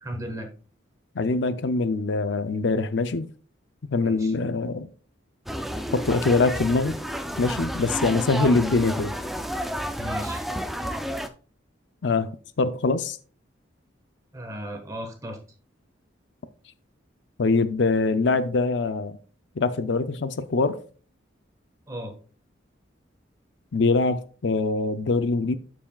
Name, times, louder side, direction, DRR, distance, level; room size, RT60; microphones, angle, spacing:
voice 1, 0.0-0.5 4.0-4.3 10.0-10.4 14.3-15.4 21.9-22.1, equal, 15° right, 1.4 m, -35 dB
voice 2, 1.2-3.3 3.9-4.9 5.9-6.9 7.4-9.1 12.0-12.3 12.6-13.2 17.4-19.2 19.6-20.8 23.7-25.6, left 3 dB, 65° left, 0.5 m, -23 dB
sound 1, 5.5-11.3, equal, ahead, 0.4 m, -31 dB
12.5 x 4.7 x 2.3 m
head